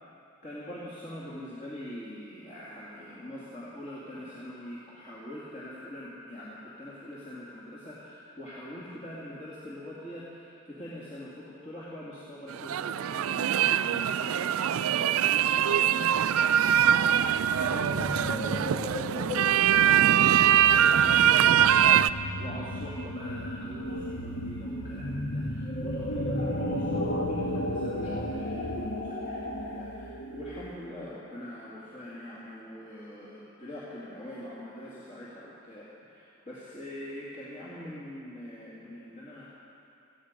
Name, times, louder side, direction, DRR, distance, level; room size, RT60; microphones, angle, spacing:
voice 1, 0.4-39.5, left 1 dB, 35° left, -8 dB, 2.4 m, -44 dB
sound 1, 12.5-22.1, right 9 dB, 75° right, 0.4 m, -23 dB
World of the Damned Souls, 16.7-30.8, left 1 dB, 60° left, 1.4 m, -34 dB
18.5 x 14.5 x 5.2 m, 2.6 s
head